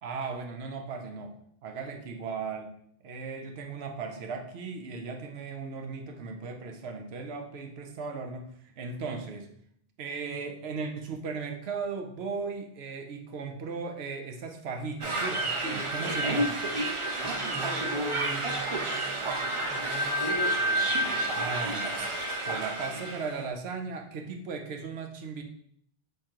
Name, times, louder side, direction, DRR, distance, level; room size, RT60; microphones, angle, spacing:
voice 1, 0.0-1.4 1.6-2.7 3.0-9.5 10.0-16.5 21.3-22.1 22.4-25.4, right 4 dB, 85° right, 4 dB, 0.9 m, -37 dB
sound 1, 15.0-23.4, right 1 dB, 40° right, 0.5 m, -30 dB
voice 2, 17.2-21.4, right 1 dB, 5° left, 0 dB, 0.5 m, -41 dB
3.6 x 3.2 x 4.4 m, 0.68 s
omnidirectional pair, 1.0 m